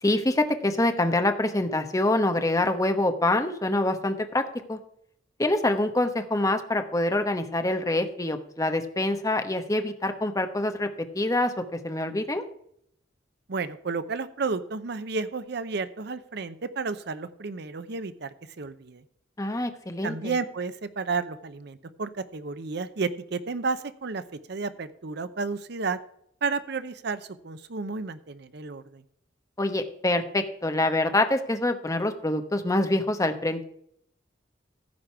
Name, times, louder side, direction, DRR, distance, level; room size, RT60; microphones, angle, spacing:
voice 1, 0.0-4.8 5.4-10.9 11.1-12.4 19.4-20.3 29.6-33.6, left 2 dB, 20° left, 7 dB, 1.0 m, -25 dB
voice 2, 13.5-18.3 18.6-19.0 20.0-24.2 24.5-26.0 26.4-29.0, right 4 dB, 60° right, 13 dB, 0.7 m, -32 dB
14.5 x 5.1 x 5.8 m, 0.70 s
head